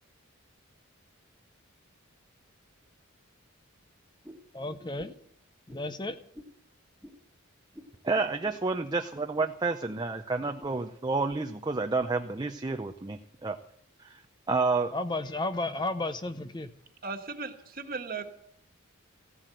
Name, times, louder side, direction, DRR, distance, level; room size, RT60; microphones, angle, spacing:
sound 1, 4.2-4.5 4.9-5.3 5.7-5.8 6.3-6.6 7.0-7.2 7.7-8.0 8.4-8.6 9.1-9.3 9.9-10.1 10.6-10.8 11.3-11.5 11.8-12.1 12.7-12.8 13.4-13.5, equal, ahead, 1.8 m, -50 dB
voice 1, 4.5-5.2 5.7-6.2 14.9-16.7, left 2 dB, 20° left, 10 dB, 0.7 m, -33 dB
voice 2, 8.0-13.6 14.0-14.2 14.5-14.9, right 3 dB, 20° right, 5 dB, 0.6 m, -30 dB
voice 3, 17.0-18.2, right 4 dB, 45° right, 5 dB, 1.6 m, -37 dB
15.5 x 11.5 x 7.8 m, 0.71 s
head